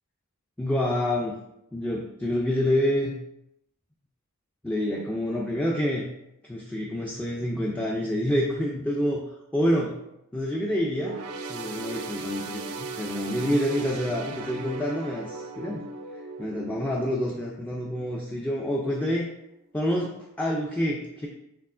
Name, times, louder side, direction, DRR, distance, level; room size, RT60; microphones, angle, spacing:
voice 1, 0.6-1.4 1.7-3.2 4.6-6.1 6.4-9.2 9.5-10.0 10.3-11.2 11.5-15.9 16.4-19.3 19.7-21.3, equal, 5° left, -2 dB, 0.3 m, -27 dB
sound 1, 10.9-18.6 19.0-19.2 20.1-20.2, right 3 dB, 80° right, 0.4 m, -38 dB
4.4 x 3.5 x 2.4 m, 0.84 s
head